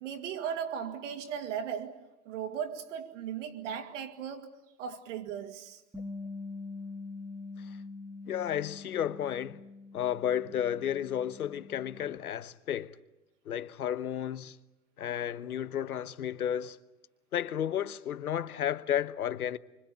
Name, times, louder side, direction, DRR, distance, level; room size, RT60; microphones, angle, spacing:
voice 1, 0.0-5.8, right 8 dB, 55° right, 2.2 m, -37 dB
Bass guitar, 5.9-12.2, left 3 dB, 5° right, 1.8 m, -44 dB
voice 2, 8.3-9.6 9.9-12.9 13.5-14.6 15.0-16.8 17.3-19.6, left 10 dB, 90° left, 1.1 m, -32 dB
25.5 x 25.0 x 8.2 m
hypercardioid pair, 135°, 43 cm